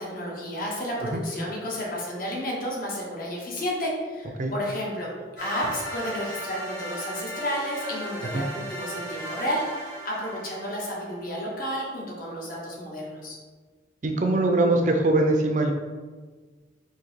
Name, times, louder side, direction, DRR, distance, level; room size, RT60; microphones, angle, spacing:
voice 1, 0.0-13.4, equal, 50° left, -4 dB, 1.0 m, -32 dB
sound 1, 5.4-11.3, right 1 dB, 70° left, 1.5 m, -36 dB
voice 2, 14.0-15.7, right 2 dB, 40° right, 3 dB, 0.4 m, -22 dB
3.9 x 2.7 x 4.4 m, 1.4 s
head